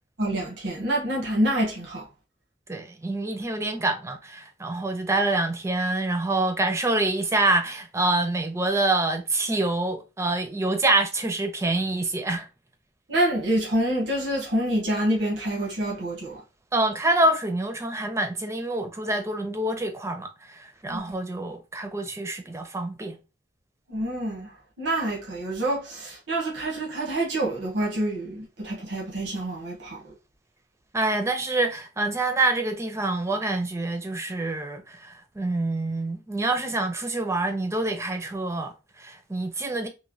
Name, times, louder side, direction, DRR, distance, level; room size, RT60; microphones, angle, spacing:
voice 1, 0.2-2.1 13.1-16.4 20.9-21.0 23.9-24.5 24.8-30.1, right 1 dB, 85° right, 0.9 m, -27 dB
voice 2, 2.7-12.5 16.7-23.2 30.9-39.9, right 2 dB, 15° right, 0.4 m, -26 dB
3.0 x 2.1 x 2.5 m
head